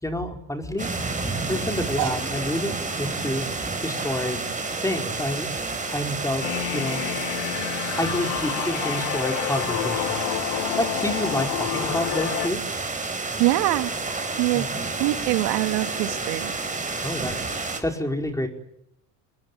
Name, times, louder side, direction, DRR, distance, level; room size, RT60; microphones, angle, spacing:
voice 1, 0.0-3.5 3.8-4.4 4.8-5.5 5.9-7.0 8.0-12.6 14.5-14.9 17.0-18.5, left 1 dB, 5° left, 4 dB, 4.9 m, -29 dB
sound 1, 0.8-17.8, right 3 dB, 15° right, 5.4 m, -30 dB
sound 2, 6.4-12.5, left 21 dB, 70° left, 1.1 m, -29 dB
voice 2, 13.4-13.9 14.4-14.7 15.0-16.6, right 19 dB, 75° right, 9 dB, 2.5 m, -23 dB
25.0 x 21.0 x 9.3 m, 0.78 s
supercardioid pair, 95°, 46 cm